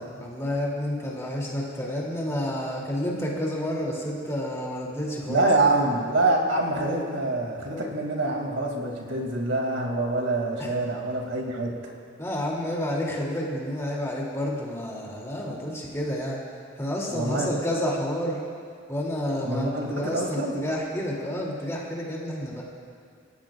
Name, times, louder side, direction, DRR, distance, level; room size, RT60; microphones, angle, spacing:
voice 1, 0.2-5.4 10.6-10.7 12.2-16.4 16.8-18.4 18.9-22.6, left 1 dB, 15° left, -3 dB, 2.8 m, -30 dB
voice 2, 5.3-11.7 17.1-17.5 19.4-20.5, right 2 dB, 75° right, 0 dB, 2.7 m, -25 dB
28.5 x 15.5 x 2.5 m, 2.6 s
head